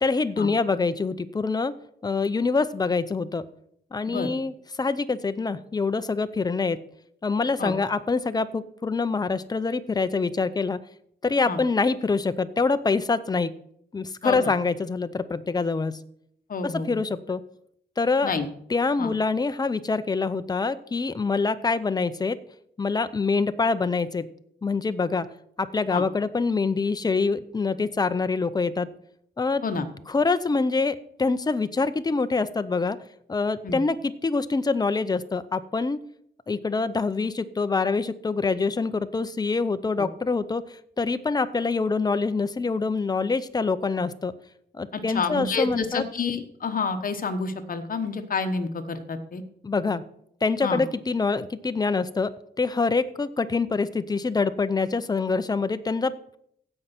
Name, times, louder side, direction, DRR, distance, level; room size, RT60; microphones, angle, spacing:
voice 1, 0.0-1.7 2.0-3.4 3.9-6.8 7.2-10.8 11.2-13.5 13.9-16.0 16.6-17.4 18.0-18.3 18.7-22.4 22.8-24.3 24.6-25.3 25.6-28.9 29.4-29.6 30.1-33.0 33.3-36.0 36.5-40.6 41.0-44.3 44.7-46.0 49.6-50.0 50.4-52.3 52.6-56.4, left 4 dB, 20° left, 12 dB, 0.6 m, -25 dB
voice 2, 16.5-17.0 18.2-18.5 19.0-19.1 25.9-26.0 29.6-29.9 33.6-33.8 44.9-49.4 50.6-50.8, left 4 dB, 50° left, 8 dB, 1.1 m, -29 dB
15.5 x 5.5 x 5.9 m, 0.70 s
wide cardioid pair, 140°, 18 cm